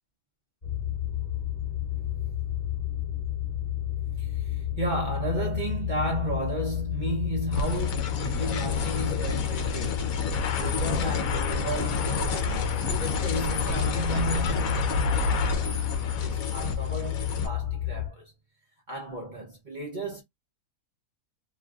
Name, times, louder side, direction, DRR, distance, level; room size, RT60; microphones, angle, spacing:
sound 1, 0.6-18.1, left 11 dB, 30° left, 1.1 m, -31 dB
voice 1, 4.2-18.3 18.9-20.2, right 1 dB, 40° right, 0.8 m, -34 dB
sound 2, 7.5-17.5, left 3 dB, 70° left, 1.1 m, -30 dB
3.0 x 2.6 x 2.4 m
omnidirectional pair, 1.6 m